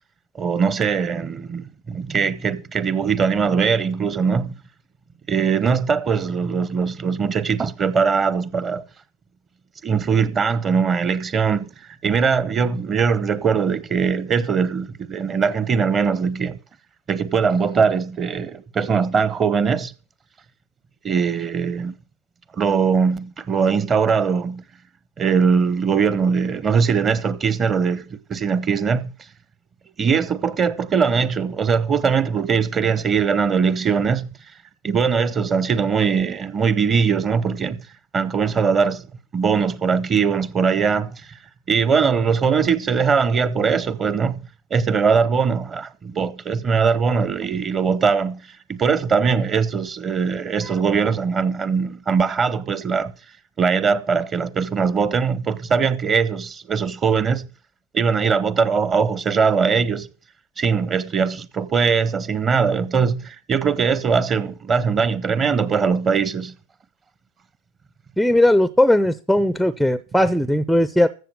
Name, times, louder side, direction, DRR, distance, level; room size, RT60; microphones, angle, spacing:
voice 1, 0.3-4.5 5.3-8.8 9.8-16.6 17.1-19.9 21.0-21.9 22.5-24.6 25.2-29.1 30.0-34.3 34.8-37.9 38.1-39.0 39.3-41.4 41.7-44.3 44.7-53.1 53.6-57.5 57.9-60.1 60.6-66.5, right 6 dB, 20° right, 0.8 m, -21 dB
voice 2, 68.2-71.1, left 1 dB, ahead, 0.5 m, -18 dB
14.5 x 7.0 x 6.3 m
figure-of-eight pair, 90°, 0 cm